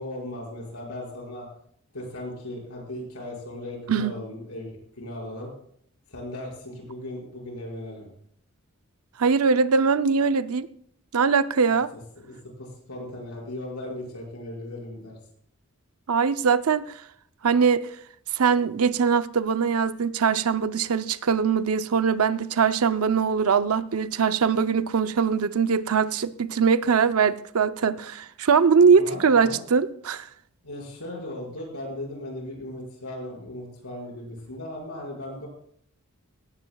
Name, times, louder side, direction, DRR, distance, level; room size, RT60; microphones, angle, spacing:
voice 1, 0.0-1.5 1.9-5.5 6.1-8.1 11.9-15.2 28.9-29.6 30.6-35.5, left 1 dB, 90° left, 5.7 m, -37 dB
voice 2, 9.2-10.7 11.1-11.9 16.1-16.9 17.4-17.9 18.4-30.3, right 6 dB, 85° right, 0.6 m, -22 dB
17.5 x 16.0 x 2.3 m
head